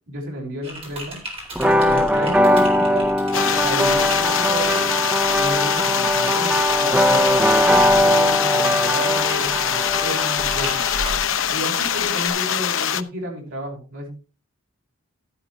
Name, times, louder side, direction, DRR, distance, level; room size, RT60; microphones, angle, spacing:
voice 1, 0.1-1.2 1.6-3.1 3.4-4.8 5.3-10.8 11.5-14.1, equal, 70° right, -1 dB, 5.3 m, -31 dB
Typing, 0.6-12.3, right 1 dB, 25° right, 3.8 m, -36 dB
sound 1, 1.6-11.2, equal, 5° right, 0.6 m, -20 dB
sound 2, 3.3-13.0, left 9 dB, 70° left, 0.7 m, -23 dB
12.0 x 11.5 x 3.2 m, 0.33 s
head